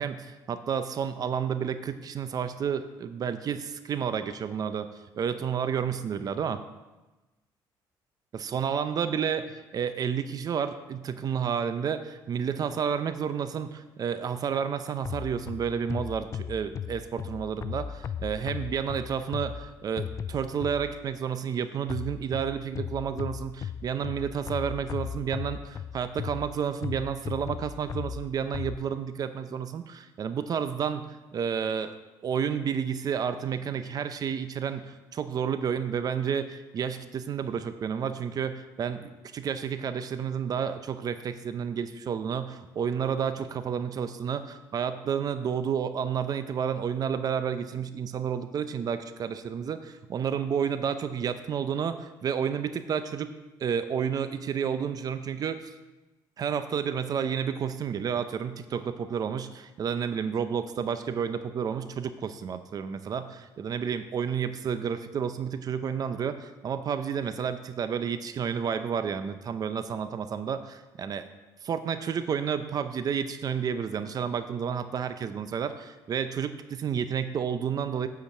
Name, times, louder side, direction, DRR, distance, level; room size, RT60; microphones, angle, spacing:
voice 1, 0.0-4.9 5.1-6.6 8.3-31.9 32.2-53.3 53.6-55.7 56.4-71.3 71.6-78.1, right 7 dB, 50° right, 10 dB, 0.6 m, -31 dB
sound 1, 15.0-21.1 21.9-28.8, left 7 dB, 40° left, 0.3 m, -37 dB
8.1 x 5.1 x 7.3 m, 1.1 s
cardioid pair, 100°, 9 cm